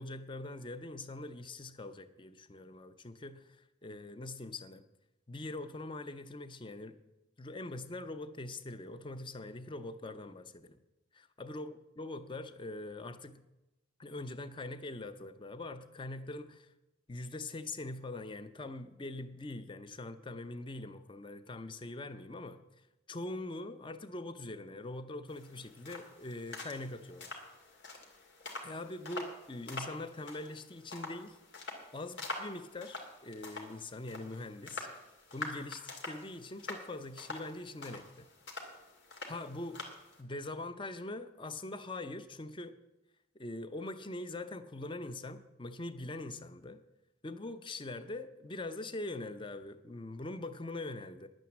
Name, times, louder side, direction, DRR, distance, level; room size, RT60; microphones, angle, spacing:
voice 1, 0.0-4.8 5.3-7.0 7.4-10.8 11.4-13.4 14.0-16.7 17.1-22.6 23.1-27.4 28.6-31.4 31.9-34.9 35.3-38.3 39.2-39.8 40.2-42.8 43.3-46.8 47.2-51.3, left 2 dB, 25° left, 11 dB, 0.7 m, -43 dB
sound 1, 25.3-40.2, left 2 dB, 85° left, 2.4 m, -46 dB
11.0 x 9.1 x 7.2 m, 0.96 s
head